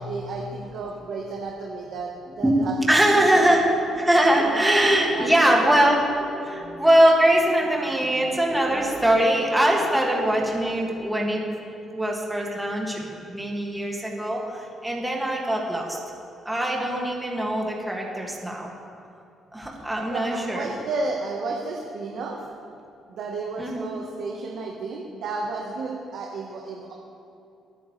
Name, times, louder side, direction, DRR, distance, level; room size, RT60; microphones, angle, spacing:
voice 1, 0.0-2.7 3.1-3.6 4.4-5.8 20.1-22.4 23.1-26.9, right 3 dB, 75° right, -1 dB, 1.5 m, -32 dB
voice 2, 2.9-11.4 11.9-16.0 16.4-18.7 19.5-20.7 23.6-23.9, right 1 dB, 10° right, -2 dB, 2.3 m, -22 dB
24.0 x 9.2 x 3.4 m, 2.6 s
cardioid pair, 90°, 0 cm